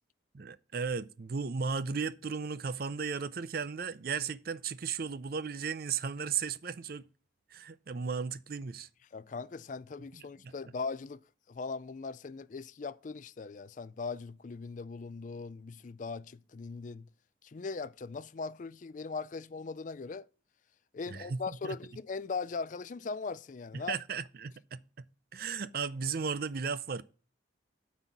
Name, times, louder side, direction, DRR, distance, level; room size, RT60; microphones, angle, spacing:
voice 1, 0.3-7.0 7.5-8.9 10.1-10.5 21.1-21.8 23.7-25.1 25.3-27.0, right 5 dB, 50° right, 0.5 m, -35 dB
voice 2, 9.1-11.2 11.5-17.1 17.4-20.3 20.9-24.0, left 4 dB, 40° left, 0.4 m, -39 dB
9.1 x 4.2 x 7.3 m
head